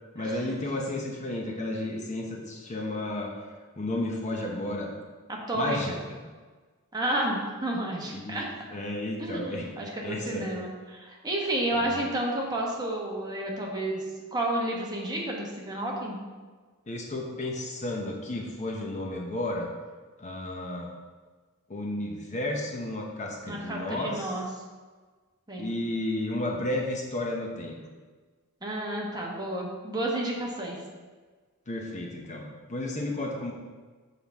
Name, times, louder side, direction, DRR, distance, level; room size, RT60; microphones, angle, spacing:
voice 1, 0.1-3.3 3.8-4.9 5.5-6.2 8.1-8.4 8.7-9.7 10.0-10.5 11.8-12.0 16.9-19.7 20.2-20.9 21.7-24.4 25.6-27.8 31.7-32.4 32.7-33.5, left 1 dB, 30° left, 0 dB, 0.8 m, -32 dB
voice 2, 5.5-6.0 6.9-8.5 9.2-14.0 14.3-16.2 23.5-24.4 25.5-25.7 28.6-30.8, right 1 dB, 20° right, -3 dB, 1.3 m, -31 dB
7.6 x 5.7 x 3.5 m, 1.4 s
head